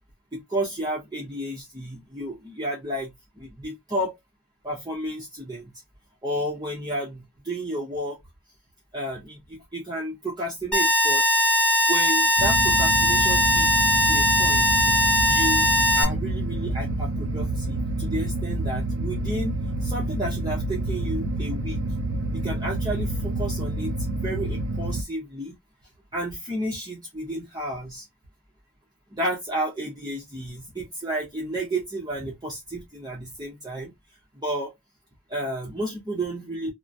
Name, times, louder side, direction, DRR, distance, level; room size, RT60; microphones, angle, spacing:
voice 1, 0.3-4.2 4.6-5.7 6.2-8.2 8.9-11.4 11.9-13.7 14.0-14.7 15.2-15.7 15.9-21.8 22.3-23.9 24.2-25.5 26.1-28.0 29.1-33.9 34.4-34.7 35.3-36.7, right 1 dB, 20° right, 0.8 m, -32 dB
sound 1, 10.7-16.0, equal, 5° left, 1.0 m, -20 dB
sound 2, 12.4-25.0, right 2 dB, 65° right, 0.4 m, -28 dB
2.9 x 2.1 x 2.4 m
head